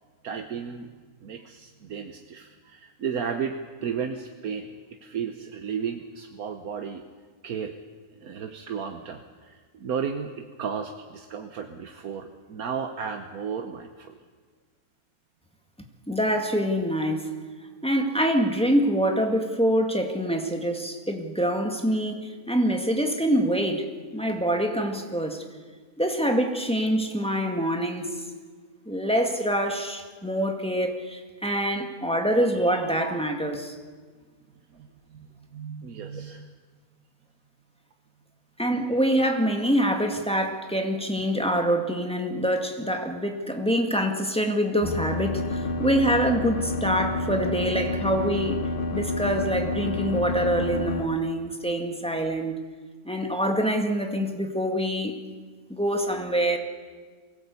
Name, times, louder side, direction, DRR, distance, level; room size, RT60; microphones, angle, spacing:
voice 1, 0.2-0.9 1.2-4.7 5.0-7.0 7.4-7.7 8.2-14.2 34.7-36.5, right 6 dB, 75° right, 5 dB, 1.5 m, -34 dB
voice 2, 16.1-17.4 17.8-23.9 24.1-25.4 26.0-28.1 28.9-33.7 38.6-48.6 48.9-52.6 53.1-55.1 55.7-56.6, equal, 5° left, 3 dB, 1.9 m, -25 dB
sound 1, 44.8-51.1, left 2 dB, 40° left, 1.1 m, -29 dB
23.5 x 17.0 x 8.3 m, 1.5 s
omnidirectional pair, 1.6 m